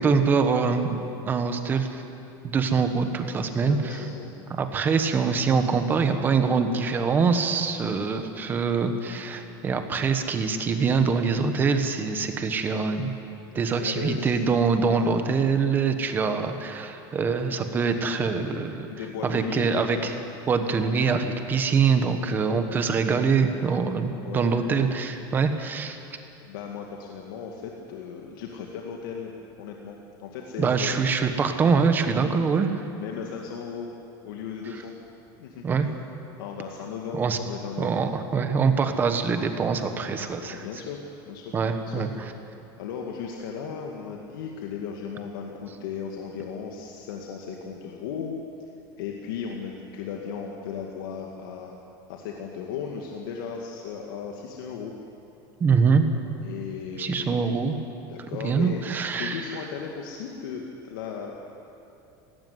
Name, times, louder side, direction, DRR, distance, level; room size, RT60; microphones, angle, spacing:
voice 1, 0.0-2.0 2.4-4.0 4.5-13.1 13.5-18.9 19.2-20.1 20.5-26.0 30.6-32.8 35.6-35.9 37.1-37.4 37.8-40.7 41.5-42.3 55.6-56.1 57.0-57.8 58.4-59.6, right 5 dB, 15° right, 7 dB, 1.2 m, -24 dB
voice 2, 3.3-4.3 13.5-14.3 14.9-15.4 18.9-20.0 24.2-24.6 26.4-29.3 29.6-31.0 33.0-33.9 34.2-34.9 35.4-35.7 36.4-37.9 40.5-42.1 42.8-48.4 49.0-51.8 52.1-54.9 56.4-57.4 58.1-58.8 59.1-61.4, left 6 dB, 90° left, 0 dB, 2.0 m, -36 dB
18.0 x 17.0 x 9.6 m, 2.7 s
cardioid pair, 180°, 11 cm